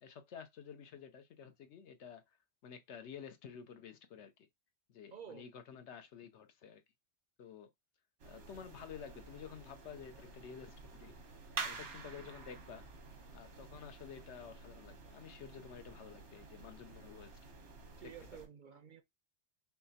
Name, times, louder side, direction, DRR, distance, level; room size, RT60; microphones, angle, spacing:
voice 1, 0.0-2.4 2.6-4.3 4.9-6.8 7.4-7.7 8.2-11.1 11.5-12.8 13.3-17.5 18.0-18.1, left 7 dB, 80° left, 1.0 m, -51 dB
voice 2, 5.1-5.4 18.0-19.0, right 8 dB, 60° right, 0.6 m, -51 dB
sound 1, 8.2-18.5, right 4 dB, 90° right, 1.3 m, -49 dB
5.7 x 2.0 x 2.8 m
omnidirectional pair, 1.2 m